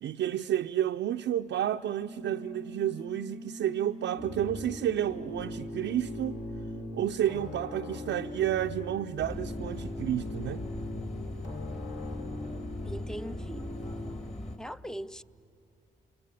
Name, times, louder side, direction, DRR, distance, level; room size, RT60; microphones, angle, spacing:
voice 1, 0.0-6.4 6.9-10.6, right 11 dB, 65° right, 0.5 m, -31 dB
sound 1, 2.0-7.2, right 1 dB, 85° left, 6.4 m, -44 dB
sound 2, 4.2-14.2, left 2 dB, 60° left, 2.3 m, -41 dB
sound 3, 9.2-14.6, left 1 dB, 30° left, 2.3 m, -39 dB
voice 2, 12.8-13.7 14.6-15.2, equal, 5° left, 0.6 m, -40 dB
28.0 x 21.0 x 9.5 m
supercardioid pair, 45°, 21 cm